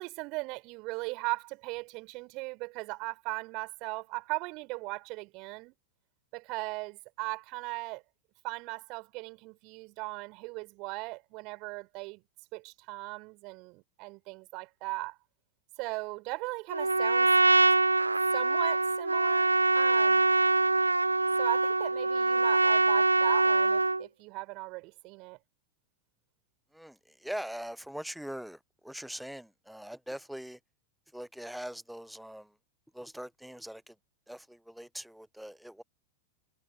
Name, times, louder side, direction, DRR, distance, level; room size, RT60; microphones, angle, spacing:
voice 1, 0.0-5.7 6.3-8.0 8.4-12.2 12.5-15.2 15.8-17.3 18.3-20.3 21.4-25.4, right 26 dB, 40° right, 4.7 m, -38 dB
Trumpet, 16.7-24.0, right 3 dB, 80° right, 0.5 m, -24 dB
voice 2, 26.7-30.6 31.1-32.5 32.9-33.9 34.3-35.8, equal, ahead, 0.8 m, -42 dB
figure-of-eight pair, 90°, 0 cm